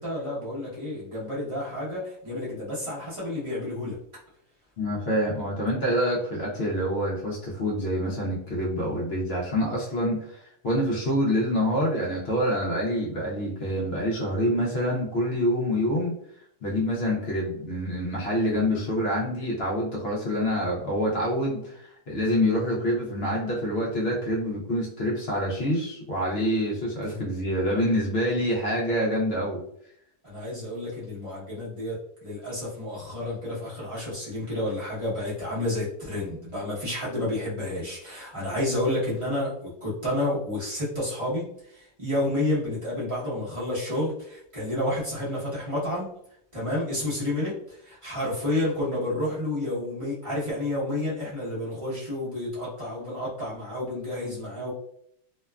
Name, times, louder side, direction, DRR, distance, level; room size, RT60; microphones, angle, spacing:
voice 1, 0.0-4.0 27.1-27.2 30.2-46.1 46.5-54.7, left 1 dB, 25° right, -8 dB, 0.7 m, -30 dB
voice 2, 4.8-16.1 16.6-29.6, equal, 65° left, -4 dB, 0.6 m, -26 dB
2.9 x 2.2 x 2.3 m, 0.70 s
omnidirectional pair, 1.8 m